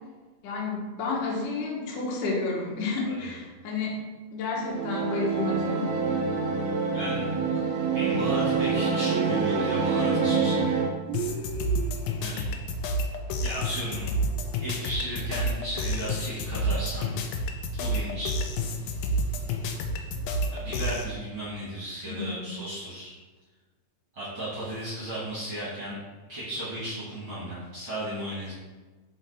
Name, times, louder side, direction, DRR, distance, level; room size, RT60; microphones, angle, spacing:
voice 1, 0.4-4.0 4.3-5.9 22.0-22.5, left 3 dB, 70° left, -3 dB, 2.7 m, -30 dB
sound 1, 4.6-10.9, right 5 dB, 70° right, 1.5 m, -26 dB
voice 2, 6.9-7.3 7.9-10.6 12.2-12.5 13.4-14.1 14.6-17.1 17.7-18.4 20.5-23.1 24.1-26.0 26.3-28.5, right 1 dB, 45° right, -9 dB, 2.1 m, -35 dB
sound 2, 9.0-9.9 11.0-12.0, right 5 dB, 85° right, 2.4 m, -34 dB
sound 3, 11.1-21.1, equal, 90° left, 2.4 m, -30 dB
5.6 x 5.4 x 4.2 m, 1.3 s
omnidirectional pair, 4.1 m